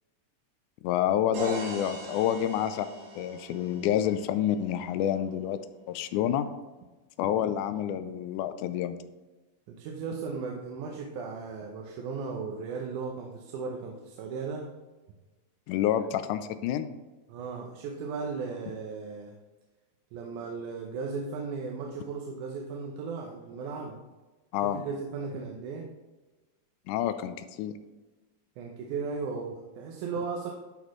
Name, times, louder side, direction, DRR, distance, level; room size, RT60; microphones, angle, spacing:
voice 1, 0.8-2.9 3.2-5.6 5.9-6.5 7.2-9.0 15.7-17.0 24.5-24.8 26.9-27.7, left 10 dB, 85° left, 11 dB, 2.0 m, -28 dB
sound 1, 1.3-5.2, right 2 dB, 65° right, 2.9 m, -40 dB
voice 2, 9.7-14.7 17.3-19.3 20.1-24.0 24.6-25.9 28.6-30.5, right 5 dB, 85° right, 0 dB, 2.2 m, -36 dB
11.5 x 4.2 x 3.1 m, 1.2 s
omnidirectional pair, 3.5 m